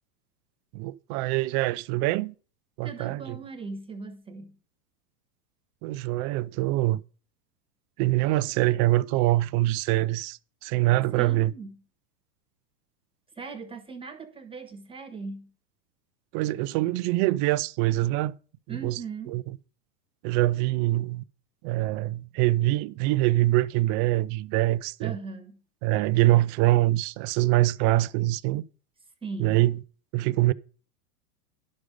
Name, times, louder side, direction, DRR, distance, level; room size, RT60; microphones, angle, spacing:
voice 1, 0.7-2.3 2.8-3.4 5.8-7.0 8.0-11.5 16.3-18.3 18.7-19.0 19.3-19.4 20.2-21.2 21.6-25.2 25.8-28.6 29.4-29.8 30.1-30.5, right 17 dB, 40° right, 0.5 m, -24 dB
voice 2, 2.8-4.6 11.1-11.8 13.3-15.5 18.7-19.3 25.0-25.6 29.2-29.7, right 4 dB, 10° right, 1.5 m, -39 dB
11.0 x 6.5 x 5.0 m
hypercardioid pair, 125°, 46 cm